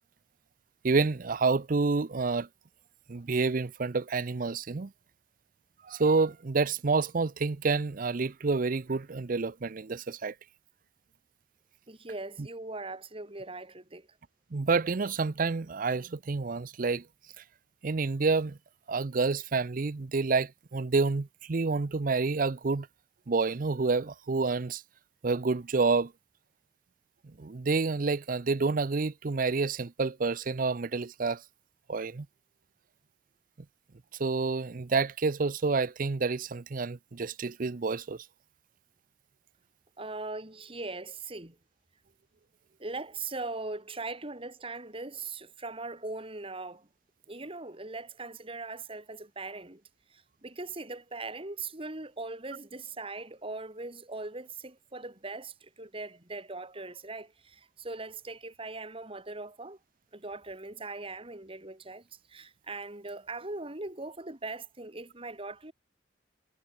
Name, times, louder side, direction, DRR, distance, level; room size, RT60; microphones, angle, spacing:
voice 1, 0.8-2.5 3.1-4.9 5.8-10.3 14.5-17.0 17.8-18.6 18.9-22.9 23.3-24.8 25.2-26.1 27.4-31.4 31.9-32.3 34.2-38.2, right 4 dB, 50° right, 0.6 m, -28 dB
voice 2, 11.9-14.1 40.0-41.6 42.8-46.9 47.3-49.8 50.1-59.8 60.1-65.7, right 3 dB, 30° right, 3.2 m, -40 dB
head